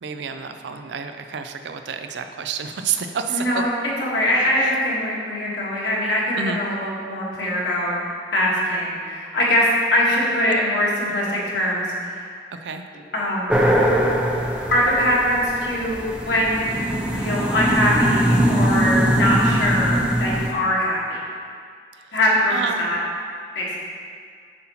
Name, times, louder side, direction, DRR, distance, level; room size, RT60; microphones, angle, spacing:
voice 1, 0.0-3.6 6.4-6.6 12.6-12.8 22.0-22.2 22.5-22.9, right 6 dB, 75° right, 7 dB, 0.4 m, -29 dB
voice 2, 3.3-3.7 4.0-8.0 8.3-12.3 13.1-13.6 14.7-21.2 22.1-23.0 23.5-23.8, equal, 75° left, -5 dB, 1.4 m, -22 dB
sound 1, 13.5-20.5, equal, 5° right, 0.5 m, -21 dB
7.6 x 5.7 x 2.9 m, 2.1 s
head